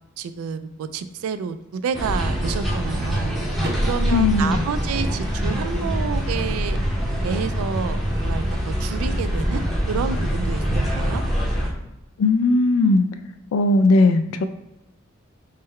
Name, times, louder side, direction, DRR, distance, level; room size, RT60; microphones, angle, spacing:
voice 1, 0.2-3.3 3.8-6.8 7.2-11.2, right 6 dB, 85° right, 14 dB, 0.3 m, -29 dB
sound 1, 1.9-11.7, equal, ahead, 0.6 m, -24 dB
Car / Door, 3.6-5.5, right 2 dB, 50° right, 0.6 m, -38 dB
voice 2, 4.1-4.6 12.2-13.1 13.5-14.4, left 2 dB, 75° left, 9 dB, 0.3 m, -17 dB
3.7 x 2.1 x 4.1 m, 0.92 s
head